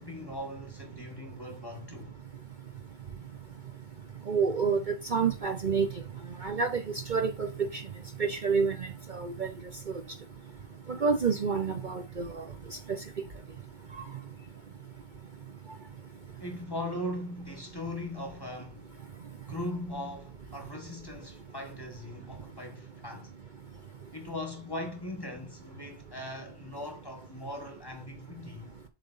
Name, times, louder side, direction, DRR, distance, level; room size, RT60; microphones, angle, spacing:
voice 1, 0.0-2.1 16.4-18.9 19.5-23.3 24.1-28.7, left 1 dB, 20° left, 1.5 m, -39 dB
voice 2, 4.3-4.8 5.1-5.9 6.4-6.8 7.1-7.7 8.2-9.5 10.9-12.4, right 5 dB, 45° right, 1.0 m, -28 dB
7.7 x 3.9 x 5.6 m
omnidirectional pair, 1.2 m